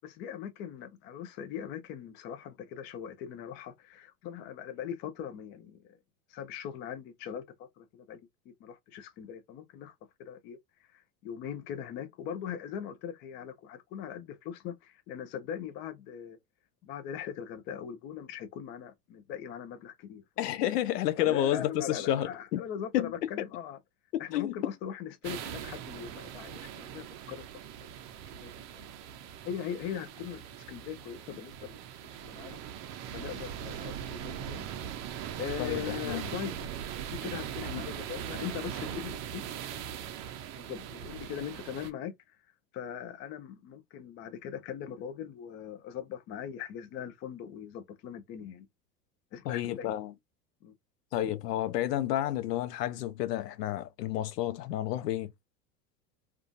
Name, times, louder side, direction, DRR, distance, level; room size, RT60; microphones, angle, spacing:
voice 1, 0.0-6.0 6.3-8.2 8.5-9.9 10.2-10.6 10.9-16.4 16.8-20.2 20.5-20.6 21.2-23.8 24.2-27.4 28.4-28.9 29.4-32.6 33.1-34.7 35.4-36.5 37.1-39.4 40.5-42.1 42.7-48.7 49.3-50.0 50.6-50.7, left 9 dB, 25° left, 0.3 m, -40 dB
voice 2, 20.4-22.6 22.9-23.1 24.1-24.6 35.6-36.3 37.7-37.9 49.5-50.1 51.1-55.3, left 12 dB, 80° left, 0.6 m, -30 dB
sound 1, 25.2-41.9, right 9 dB, 35° right, 0.5 m, -40 dB
2.4 x 2.3 x 2.5 m
hypercardioid pair, 90°, 47 cm